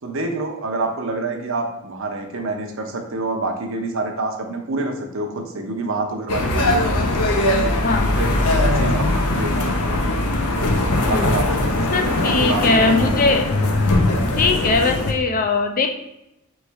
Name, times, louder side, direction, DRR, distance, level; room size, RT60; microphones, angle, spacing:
voice 1, 0.0-6.9 8.0-8.3 8.6-10.0 11.0-13.2, right 2 dB, 60° right, 4 dB, 0.6 m, -27 dB
sound 1, 6.3-15.1, left 1 dB, 90° left, 0.6 m, -20 dB
voice 2, 11.9-13.5 14.4-16.0, left 3 dB, 40° left, 4 dB, 0.4 m, -20 dB
3.2 x 3.1 x 4.5 m, 0.85 s
head